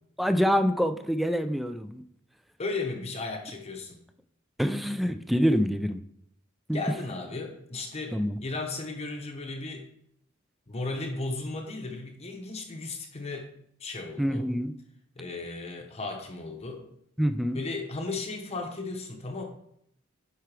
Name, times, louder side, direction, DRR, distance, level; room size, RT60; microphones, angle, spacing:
voice 1, 0.2-2.0 4.6-6.0 6.7-6.8 8.1-8.4 14.2-14.7 17.2-17.6, equal, ahead, 9 dB, 0.3 m, -26 dB
voice 2, 2.6-4.0 6.7-9.9 10.7-13.5 13.8-14.5 15.2-16.9 17.5-19.4, left 3 dB, 30° left, 3 dB, 0.8 m, -35 dB
10.5 x 4.7 x 3.3 m, 0.73 s
head